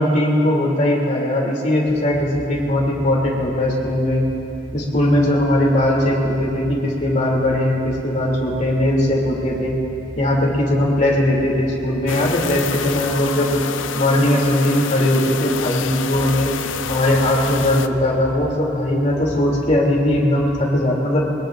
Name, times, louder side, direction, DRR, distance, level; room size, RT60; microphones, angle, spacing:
voice 1, 0.0-4.3 4.7-9.8 10.1-13.6 14.0-16.5 16.9-21.3, left 1 dB, 40° left, -3 dB, 3.0 m, -19 dB
sound 1, 2.1-20.8, equal, 40° right, 4.0 m, -38 dB
sound 2, 12.1-17.9, left 6 dB, 85° left, 0.6 m, -28 dB
22.5 x 21.0 x 2.6 m, 2.9 s
head